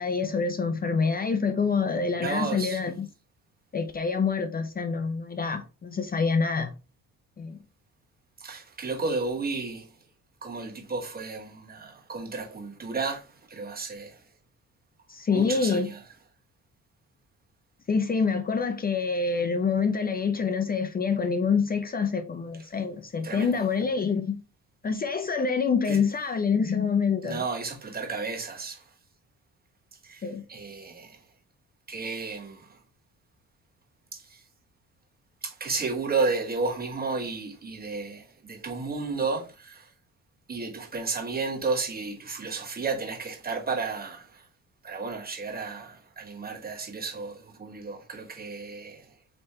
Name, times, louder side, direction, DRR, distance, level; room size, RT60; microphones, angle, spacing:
voice 1, 0.0-3.1 3.7-6.7 7.4-7.6 15.1-15.9 17.9-24.4 24.8-27.4 30.2-30.4, left 5 dB, 30° left, 0.6 m, -26 dB
voice 2, 2.2-2.8 8.4-9.9 10.4-14.2 15.3-16.0 23.2-23.6 25.9-26.0 27.2-28.8 30.0-31.2 31.9-32.7 34.1-34.4 35.4-39.9 40.5-44.4 44.8-49.1, right 4 dB, 30° right, 1.2 m, -32 dB
4.2 x 3.3 x 3.4 m
cardioid pair, 90°, 30 cm